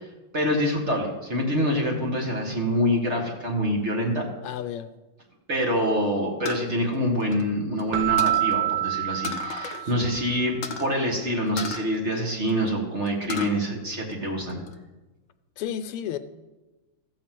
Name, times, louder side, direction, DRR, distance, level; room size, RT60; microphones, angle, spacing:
voice 1, 0.3-4.3 5.5-14.6, equal, 35° right, 1.7 m, -26 dB
voice 2, 4.4-4.9 9.8-10.1 15.6-16.2, left 10 dB, 85° left, 1.6 m, -33 dB
sound 1, 6.4-7.8 8.2-8.5 9.2-9.9 10.1-10.2 10.6-10.9 11.6-12.7 13.1-13.6 14.0-14.7, left 6 dB, 70° left, 0.7 m, -34 dB
Keyboard (musical), 7.9-10.3, right 14 dB, 65° right, 1.0 m, -26 dB
14.5 x 5.1 x 7.5 m
omnidirectional pair, 2.4 m